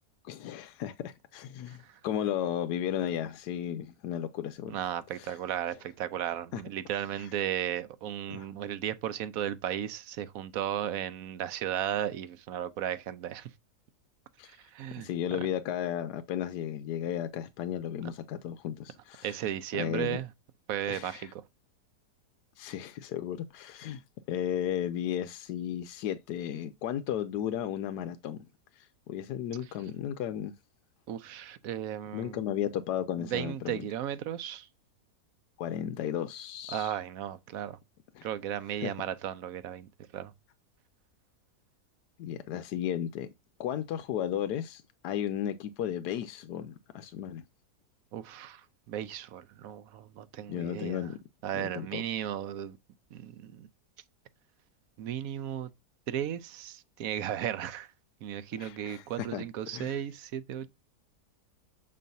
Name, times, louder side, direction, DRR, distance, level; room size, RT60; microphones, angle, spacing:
voice 1, 0.2-4.8 5.2-5.4 6.5-6.6 7.2-7.3 8.3-8.5 14.4-14.6 15.0-19.4 19.8-20.2 20.9-21.3 22.6-24.0 24.3-28.4 28.8-30.5 32.1-33.8 35.6-37.0 38.2-38.3 38.8-38.9 42.2-43.3 43.6-47.4 50.5-51.2 51.5-52.0 58.6-59.4 59.7-60.0, left 10 dB, 85° left, 1.2 m, -34 dB
voice 2, 4.7-13.5 14.7-15.1 18.0-18.1 19.2-20.3 20.7-21.4 31.1-32.5 33.2-34.7 36.7-37.8 38.2-40.3 48.1-48.6 48.9-51.1 51.4-52.8 53.1-53.7 55.0-55.7 56.1-57.9 58.2-60.7, right 10 dB, 65° right, 1.0 m, -35 dB
7.6 x 5.3 x 2.7 m
omnidirectional pair, 1.7 m